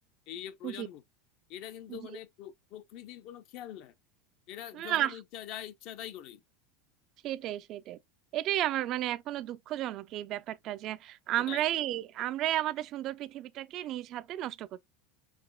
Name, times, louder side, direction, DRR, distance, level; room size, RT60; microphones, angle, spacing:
voice 1, 0.3-1.0 1.5-3.9 4.5-6.4 11.5-11.6, left 11 dB, 50° left, 0.6 m, -44 dB
voice 2, 4.7-5.2 7.2-8.0 8.3-14.8, right 13 dB, 40° right, 0.3 m, -33 dB
4.8 x 2.9 x 2.3 m
supercardioid pair, 140°, 0 cm